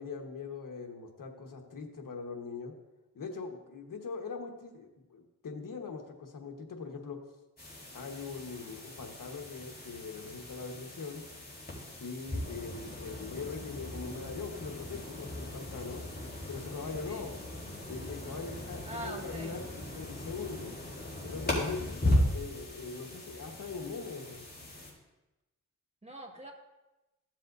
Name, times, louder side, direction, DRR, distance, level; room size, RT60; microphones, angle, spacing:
voice 1, 0.0-2.7 3.1-7.2 7.9-11.2 12.0-16.0 16.5-17.3 17.9-20.8 21.2-24.4, left 4 dB, 75° left, 3 dB, 1.3 m, -41 dB
tape noise, 7.6-24.9, left 1 dB, 30° left, 3.7 m, -37 dB
voice 2, 18.8-19.6 26.0-26.5, right 1 dB, 20° right, 0 dB, 2.1 m, -43 dB
15.0 x 7.4 x 2.6 m, 1.0 s
cardioid pair, 55°, 33 cm